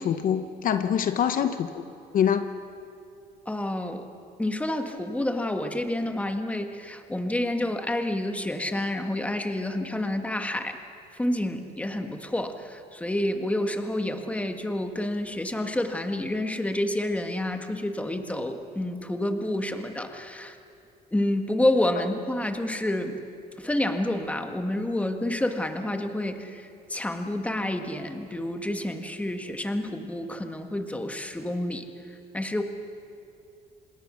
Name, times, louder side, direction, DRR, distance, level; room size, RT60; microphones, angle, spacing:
voice 1, 0.0-1.8 2.1-2.5, left 8 dB, 55° left, 9 dB, 0.9 m, -25 dB
voice 2, 3.4-4.1 4.4-10.8 11.1-20.6 21.1-23.2 23.6-31.8 32.3-32.6, left 1 dB, 10° left, 6 dB, 1.7 m, -29 dB
27.0 x 20.5 x 6.4 m, 2.5 s
cardioid pair, 110°, 17 cm